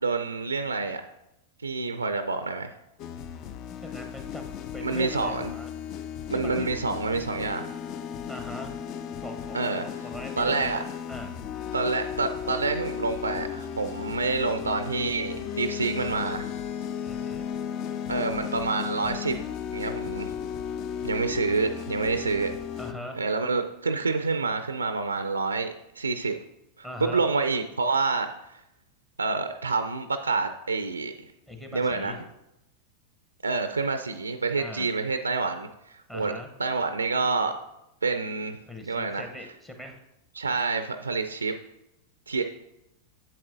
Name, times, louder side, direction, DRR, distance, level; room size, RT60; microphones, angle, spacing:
voice 1, 0.0-1.0 1.6-2.7 4.8-5.5 6.3-7.7 9.5-9.8 10.4-10.8 11.7-16.5 18.1-19.3 19.7-20.3 21.0-22.6 23.1-26.3 26.8-28.3 29.2-31.1 31.7-32.2 33.4-35.7 36.1-36.3 36.6-37.6 38.0-39.2 40.3-41.5 42.3-42.4, right 4 dB, 80° right, 8 dB, 0.3 m, -27 dB
sound 1, 3.0-22.9, left 8 dB, 40° left, 0.4 m, -35 dB
voice 2, 3.7-5.7 6.3-6.8 8.3-8.8 9.2-10.7 11.1-11.3 17.0-17.5 22.8-23.2 26.8-27.2 31.5-32.2 34.6-34.9 36.1-36.5 38.7-40.0, left 1 dB, 15° left, 4 dB, 0.8 m, -40 dB
7.7 x 7.3 x 2.6 m, 0.87 s
figure-of-eight pair, 90°, 0 cm